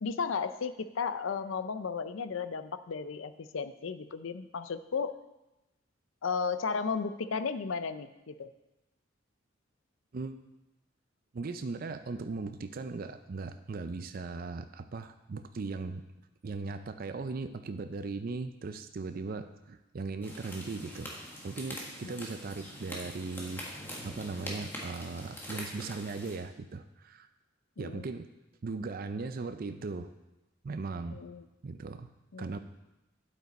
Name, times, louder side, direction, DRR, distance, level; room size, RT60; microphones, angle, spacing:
voice 1, 0.0-5.2 6.2-8.5 22.0-22.1 27.8-28.0 31.1-31.5 32.3-32.6, left 5 dB, 80° left, 12 dB, 0.5 m, -34 dB
voice 2, 11.3-16.0 16.4-21.1 21.4-27.3 27.8-28.3 28.6-30.1 30.6-31.2 31.6-32.1 32.4-32.6, right 3 dB, 45° right, 9 dB, 0.4 m, -38 dB
sound 1, 20.2-26.4, equal, 10° left, 1.6 m, -43 dB
9.4 x 8.1 x 4.1 m, 0.98 s
head